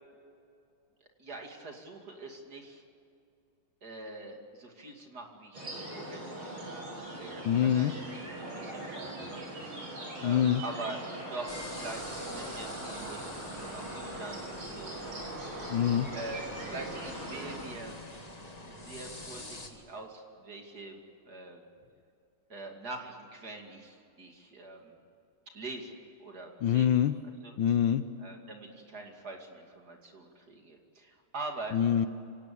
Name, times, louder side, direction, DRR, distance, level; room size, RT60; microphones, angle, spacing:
voice 1, 1.2-2.8 3.8-8.0 8.5-9.6 10.2-11.0 11.3-15.5 16.1-18.0 18.6-21.0 21.3-21.6 22.5-24.9 25.5-26.9 27.4-27.5 28.2-31.8, right 2 dB, 45° right, 2 dB, 3.0 m, -44 dB
sound 1, 5.5-17.6, right 1 dB, 70° right, 6.1 m, -41 dB
voice 2, 7.4-7.9 10.2-10.6 15.7-16.1 26.6-27.1 27.6-28.0 31.7-32.1, left 9 dB, 70° left, 12 dB, 1.4 m, -25 dB
sound 2, 11.5-19.7, left 1 dB, 20° left, 2.0 m, -45 dB
25.5 x 18.5 x 8.5 m, 2.6 s
omnidirectional pair, 2.4 m